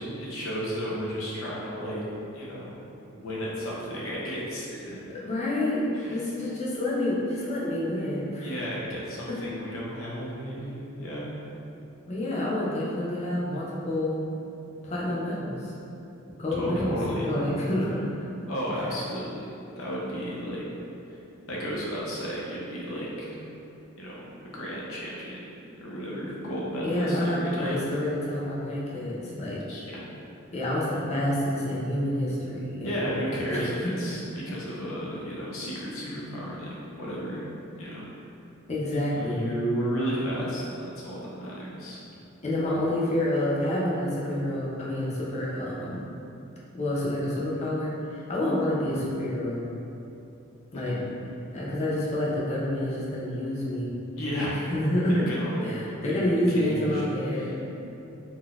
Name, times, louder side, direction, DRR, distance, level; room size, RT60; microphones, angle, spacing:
voice 1, 0.0-2.0 2.3-2.8 3.1-5.0 6.0-6.2 8.4-11.4 16.5-17.3 18.5-19.5 19.8-20.6 21.5-23.4 24.0-24.3 24.5-25.5 25.8-27.9 29.7-30.0 32.8-37.5 37.8-38.1 38.9-42.0 50.7-51.0 54.2-54.6 55.1-55.7 56.0-57.1 57.3-57.5, equal, 75° left, -5 dB, 0.6 m, -33 dB
voice 2, 5.1-5.8 6.1-8.5 9.3-9.4 12.1-14.3 14.8-15.7 16.4-18.0 26.8-29.6 30.5-32.9 33.5-33.7 38.7-39.4 42.4-46.0 46.7-49.7 50.7-53.9 54.7-55.1 55.6-57.6, left 1 dB, 35° left, -6 dB, 0.5 m, -28 dB
3.9 x 2.1 x 2.3 m, 2.8 s
head